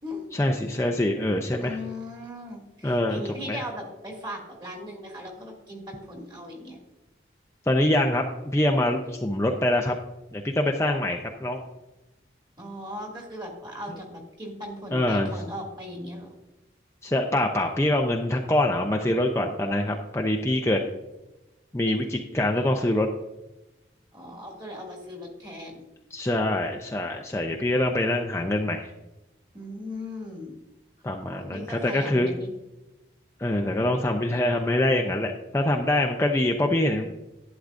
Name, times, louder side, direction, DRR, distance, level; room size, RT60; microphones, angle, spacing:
voice 1, 0.3-1.8 2.8-3.6 7.7-9.9 10.3-11.6 14.9-15.3 17.0-20.8 21.7-23.1 26.1-28.9 31.0-32.3 33.4-37.2, left 1 dB, 15° left, 2 dB, 0.5 m, -24 dB
voice 2, 1.6-6.8 12.6-16.3 24.1-25.8 29.5-30.6 31.2-32.5, left 1 dB, 25° right, -1 dB, 2.4 m, -38 dB
11.5 x 10.0 x 2.5 m, 1.0 s
head